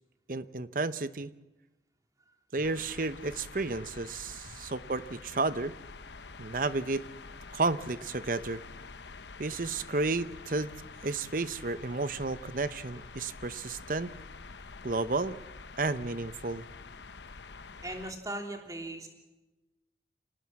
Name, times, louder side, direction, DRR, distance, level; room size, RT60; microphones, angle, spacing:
voice 1, 0.3-1.3 2.5-5.7 6.4-7.0 7.5-8.6 9.4-10.7 11.0-14.1 14.8-15.4 15.8-16.6, right 3 dB, 50° right, 14 dB, 0.8 m, -32 dB
sound 1, 2.6-18.1, left 4 dB, 80° left, 0.9 m, -47 dB
voice 2, 17.8-19.1, right 1 dB, 20° right, 2 dB, 3.2 m, -38 dB
26.0 x 19.0 x 7.4 m, 1.0 s
head